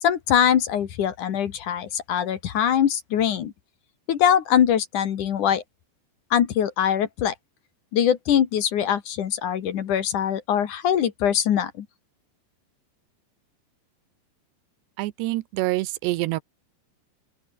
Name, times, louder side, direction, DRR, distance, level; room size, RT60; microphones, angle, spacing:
voice 1, 0.0-3.5 4.1-5.6 6.3-7.3 7.9-11.9, left 9 dB, 60° left, 2.6 m, -22 dB
voice 2, 15.0-16.4, right 18 dB, 85° right, 3.1 m, -26 dB
open air
omnidirectional pair, 4.9 m